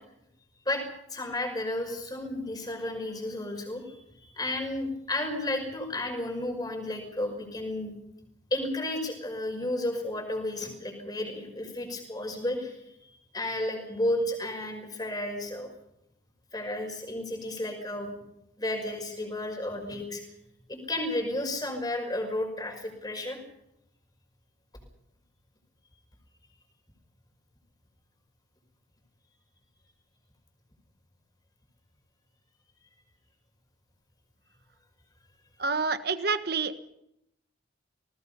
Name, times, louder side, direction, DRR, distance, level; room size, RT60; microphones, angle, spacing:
voice 1, 1.1-7.9 8.5-12.8 13.3-15.7 16.5-18.1 18.6-20.2 20.7-23.4, left 1 dB, 20° left, 3 dB, 5.7 m, -32 dB
voice 2, 35.6-36.8, right 4 dB, 55° right, 10 dB, 1.4 m, -28 dB
28.5 x 19.5 x 5.6 m, 0.82 s
head